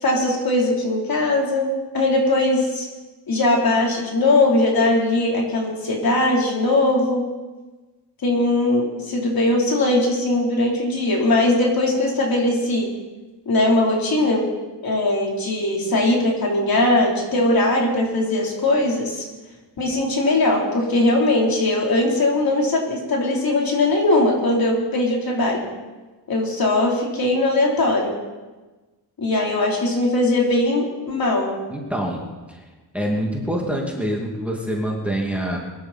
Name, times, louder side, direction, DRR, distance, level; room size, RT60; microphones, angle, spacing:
voice 1, 0.0-2.9 3.3-7.2 8.2-12.9 13.5-14.5 14.8-19.3 19.8-25.6 26.3-28.2 29.2-31.5, left 2 dB, 50° left, -1 dB, 4.0 m, -20 dB
voice 2, 31.7-32.6 32.9-35.6, equal, 5° right, -1 dB, 2.5 m, -26 dB
22.0 x 12.0 x 4.4 m, 1.2 s
cardioid pair, 100°, 44 cm